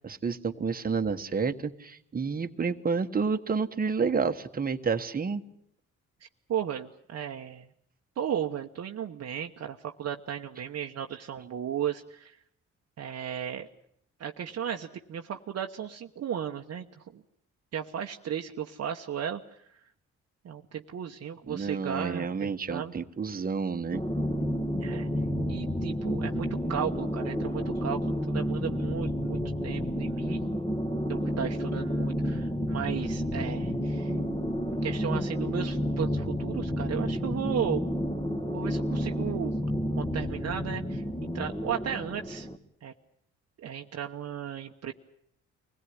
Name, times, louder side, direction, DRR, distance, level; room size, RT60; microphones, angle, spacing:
voice 1, 0.0-5.4 21.5-24.0, right 5 dB, 30° right, 7 dB, 1.4 m, -30 dB
voice 2, 6.5-7.7 8.2-12.4 13.0-13.7 14.2-17.2 17.7-19.6 20.4-22.9 24.8-25.1 25.5-30.4 31.1-34.1 34.8-37.8 38.5-39.5 40.0-41.0 41.3-42.5 42.8-42.9 43.6-44.9, right 9 dB, 55° right, 3 dB, 1.1 m, -35 dB
sound 1, 23.9-42.6, equal, 20° left, 2.0 m, -30 dB
24.0 x 17.0 x 9.7 m, 0.71 s
cardioid pair, 90°, 30 cm